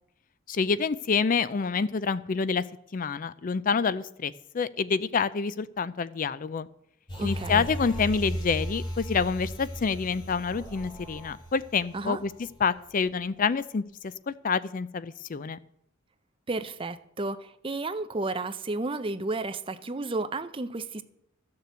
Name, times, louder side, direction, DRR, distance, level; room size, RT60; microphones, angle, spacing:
voice 1, 0.5-2.6 2.9-6.7 7.2-12.3 12.6-13.8 14.3-15.6, left 5 dB, 40° left, 0.4 m, -27 dB
sound 1, 7.1-12.7 13.1-13.2, equal, 20° left, 2.8 m, -36 dB
voice 2, 7.2-7.7 11.9-12.2 16.5-21.0, right 2 dB, 25° right, 0.6 m, -32 dB
13.5 x 6.7 x 8.1 m
head